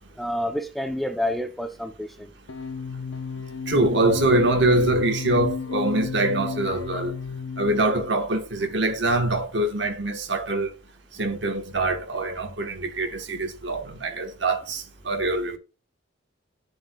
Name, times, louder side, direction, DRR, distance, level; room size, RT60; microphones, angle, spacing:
voice 1, 0.2-2.3, left 1 dB, ahead, 0.5 m, -29 dB
sound 1, 2.5-8.2, left 5 dB, 75° left, 0.6 m, -33 dB
voice 2, 3.7-7.1 7.6-10.7 11.2-15.6, right 2 dB, 60° right, 1.1 m, -24 dB
9.5 x 7.5 x 2.2 m
head